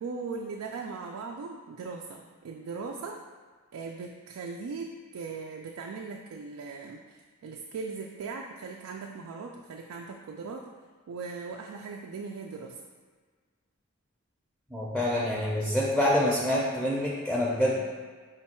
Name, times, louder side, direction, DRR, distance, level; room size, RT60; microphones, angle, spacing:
voice 1, 0.0-3.2 3.7-7.0 7.4-10.7 11.1-12.8, right 4 dB, 85° right, 0 dB, 0.3 m, -39 dB
voice 2, 14.7-17.8, left 1 dB, ahead, -5 dB, 0.5 m, -26 dB
5.1 x 2.3 x 4.2 m, 1.5 s
head